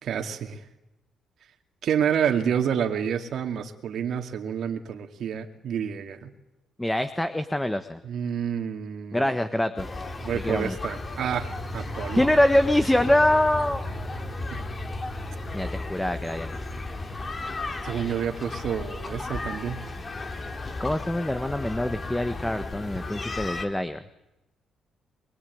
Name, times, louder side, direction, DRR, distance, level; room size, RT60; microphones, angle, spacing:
voice 1, 0.0-0.6 1.8-6.3 8.0-9.3 10.2-12.2 14.5-14.6 17.8-19.8, right 8 dB, 65° right, 4 dB, 2.5 m, -29 dB
voice 2, 6.8-8.0 9.1-10.0 10.3-10.8 12.1-13.8 15.5-16.7 20.8-24.0, left 1 dB, 10° left, 9 dB, 1.4 m, -24 dB
sound 1, 9.8-23.7, left 2 dB, 30° left, 2.8 m, -34 dB
24.0 x 23.5 x 9.5 m, 0.94 s
cardioid pair, 90°, 0 cm